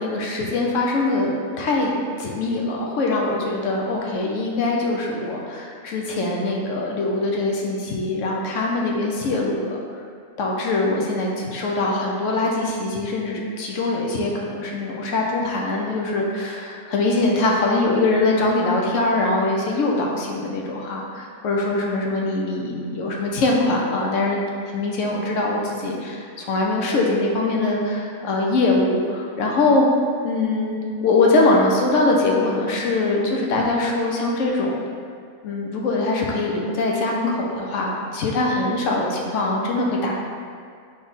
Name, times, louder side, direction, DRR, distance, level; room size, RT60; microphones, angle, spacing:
voice 1, 0.0-9.8 10.4-24.4 24.7-29.9 30.2-34.8 35.4-40.1, left 2 dB, 70° left, -2 dB, 0.9 m, -22 dB
4.2 x 3.3 x 3.6 m, 2.2 s
omnidirectional pair, 1.5 m